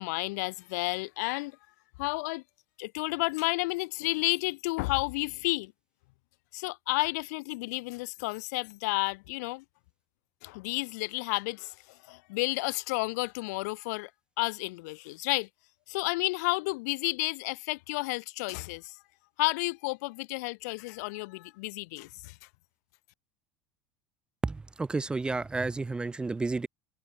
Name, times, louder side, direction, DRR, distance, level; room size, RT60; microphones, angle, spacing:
voice 1, 0.0-1.6 2.0-2.4 2.8-5.7 6.5-9.6 10.4-14.1 14.4-15.5 15.9-19.0 19.4-22.4, left 24 dB, 85° left, 1.3 m, -31 dB
voice 2, 24.4-26.7, right 3 dB, 10° right, 0.4 m, -31 dB
cardioid pair, 145°, 9 cm